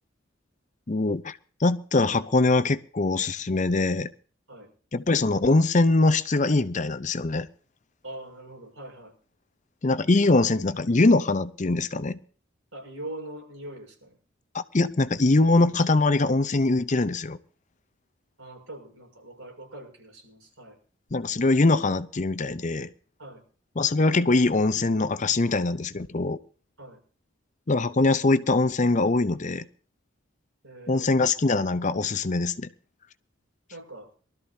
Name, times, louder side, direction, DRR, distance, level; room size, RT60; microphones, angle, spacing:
voice 1, 0.9-4.1 4.9-7.5 9.8-12.2 14.5-17.4 21.1-22.9 23.8-26.4 27.7-29.7 30.9-32.7, left 2 dB, 35° left, 0.6 m, -23 dB
voice 2, 8.0-9.1 12.7-14.2 18.4-20.8 23.2-23.4 26.8-27.0 30.6-31.1 33.7-34.1, right 1 dB, 85° right, 6.0 m, -42 dB
23.5 x 13.0 x 2.7 m
head